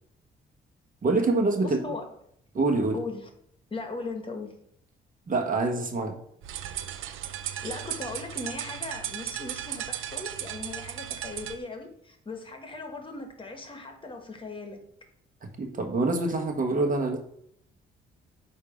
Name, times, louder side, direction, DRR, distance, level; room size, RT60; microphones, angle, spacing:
voice 1, 1.0-1.8 2.5-3.0 5.3-6.2 15.4-17.2, right 3 dB, 45° right, 3 dB, 1.2 m, -25 dB
voice 2, 1.6-2.1 2.9-3.3 3.7-4.5 7.6-14.8, left 3 dB, 25° left, 4 dB, 1.3 m, -38 dB
sound 1, 6.4-11.6, right 11 dB, 85° right, 0.6 m, -36 dB
8.2 x 2.8 x 5.0 m, 0.70 s
cardioid pair, 90°, 20 cm